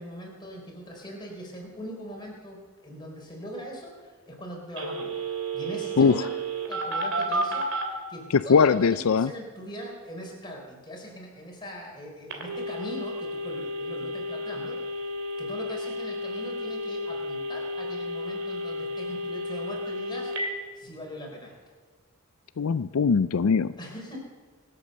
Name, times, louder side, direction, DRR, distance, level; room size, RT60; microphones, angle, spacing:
voice 1, 0.0-5.1 5.5-6.3 6.7-15.1 15.4-20.3 20.8-21.5 23.8-24.2, equal, 20° left, -1 dB, 4.2 m, -41 dB
Telephone, 4.8-7.9 12.3-20.5, equal, 60° right, 2.9 m, -32 dB
voice 2, 8.5-9.3 22.6-23.7, left 5 dB, 85° left, 13 dB, 0.4 m, -21 dB
25.0 x 8.4 x 6.6 m, 1.5 s
head